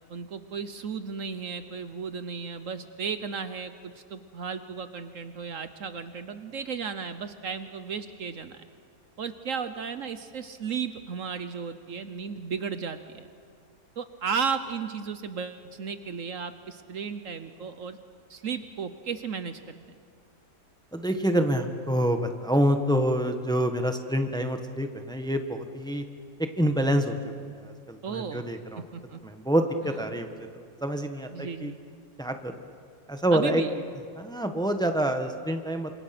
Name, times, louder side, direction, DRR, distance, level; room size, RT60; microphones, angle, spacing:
voice 1, 0.1-8.6 9.2-13.3 14.0-18.0 18.3-19.8 28.0-28.4 28.9-29.2 31.3-31.8 33.3-33.7, right 6 dB, 60° right, 10 dB, 1.2 m, -34 dB
voice 2, 20.9-26.0 26.4-27.2 27.6-28.9 29.2-30.5 30.8-31.7 32.2-32.5 33.1-33.6 34.2-36.0, equal, 5° left, 6 dB, 1.3 m, -27 dB
28.5 x 26.5 x 6.0 m, 2.2 s
omnidirectional pair, 1.6 m